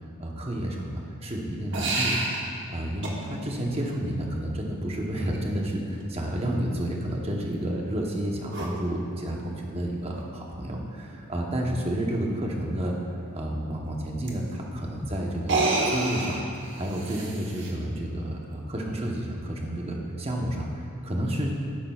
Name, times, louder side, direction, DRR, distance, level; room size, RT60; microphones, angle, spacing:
voice 1, 0.2-2.2 2.7-13.0 13.3-15.6 15.9-16.4 16.8-21.6, right 1 dB, 25° right, -1 dB, 0.9 m, -30 dB
sound 1, 1.7-2.4 3.0-3.1 5.3-5.4 8.5-8.7 10.2-10.3 10.7-10.8 11.1-11.2 14.3-14.4 15.4-17.7, right 2 dB, 55° right, 1.0 m, -28 dB
12.0 x 9.9 x 2.4 m, 2.5 s
head